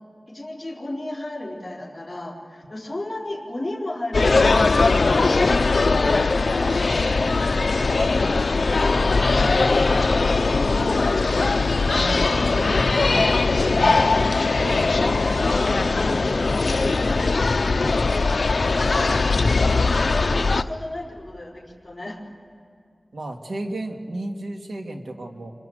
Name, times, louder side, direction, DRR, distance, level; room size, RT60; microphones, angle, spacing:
voice 1, 0.3-4.6 5.1-7.3 9.4-11.3 14.8-15.7 16.1-18.5 20.0-22.3, left 1 dB, 20° left, -5 dB, 4.3 m, -34 dB
sound 1, 4.1-20.6, left 3 dB, 70° left, 0.6 m, -20 dB
voice 2, 7.7-8.3 9.2-9.6 11.9-13.3 13.8-14.1 14.6-14.9 23.1-25.5, right 1 dB, 85° right, 3 dB, 2.2 m, -33 dB
27.0 x 25.5 x 8.0 m, 2.3 s
wide cardioid pair, 75°, 0 cm